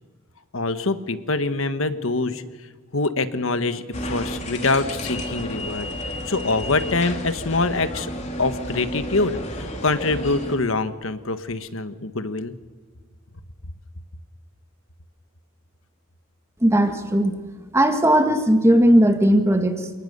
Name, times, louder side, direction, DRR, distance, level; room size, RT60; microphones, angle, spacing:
voice 1, 0.5-2.4 2.9-5.9 6.3-8.1 8.4-12.5, left 3 dB, 75° left, 10 dB, 1.4 m, -24 dB
sound 1, 3.9-10.6, equal, 35° left, 2.9 m, -31 dB
voice 2, 16.6-17.4 17.7-19.9, equal, 15° right, 6 dB, 1.9 m, -17 dB
28.0 x 19.0 x 6.8 m, 1.4 s
head